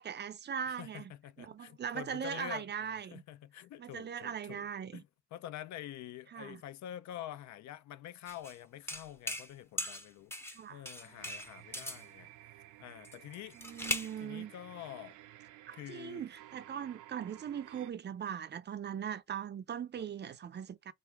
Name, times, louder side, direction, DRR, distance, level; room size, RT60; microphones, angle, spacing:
voice 1, 0.0-1.1 1.4-3.2 3.8-5.0 6.3-6.6 10.5-10.8 13.5-14.5 15.7-20.9, right 8 dB, 35° right, 0.4 m, -40 dB
voice 2, 0.7-4.7 4.9-10.3 10.7-13.6 14.2-15.2 15.7-16.3 20.0-20.1, left 12 dB, 65° left, 0.5 m, -47 dB
sound 1, 8.3-8.6 8.9-9.5 9.8-10.6 10.9-12.0 13.0-14.2, equal, 10° left, 0.6 m, -39 dB
sound 2, 10.9-17.9, right 15 dB, 85° right, 0.5 m, -55 dB
3.3 x 2.5 x 4.5 m
cardioid pair, 90°, 30 cm